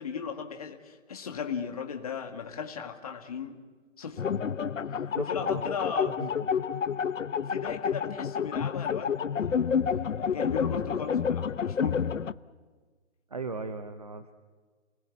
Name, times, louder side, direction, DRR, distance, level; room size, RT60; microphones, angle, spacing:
voice 1, 0.0-3.6 4.0-4.3 5.2-6.2 7.4-9.6 10.1-12.1, left 6 dB, 30° left, 4 dB, 1.8 m, -37 dB
sound 1, 4.2-12.3, left 7 dB, 80° left, 0.9 m, -29 dB
voice 2, 4.9-5.7 6.0-6.5 13.3-14.3, right 4 dB, 30° right, 9 dB, 0.8 m, -38 dB
29.0 x 20.0 x 8.4 m, 1.5 s
hypercardioid pair, 170°, 37 cm